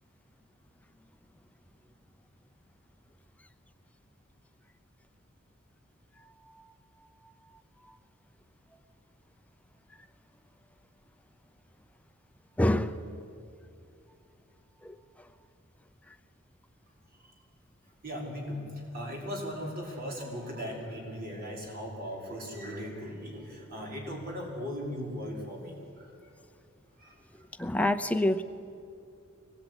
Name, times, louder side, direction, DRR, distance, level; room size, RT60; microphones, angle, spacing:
voice 1, 12.6-13.0 14.8-15.3 16.1-16.2 27.6-28.4, left 1 dB, 5° left, 8 dB, 0.7 m, -28 dB
voice 2, 18.0-26.3 27.0-27.4, equal, 45° right, -1 dB, 5.4 m, -38 dB
24.5 x 20.5 x 10.0 m, 2.5 s
head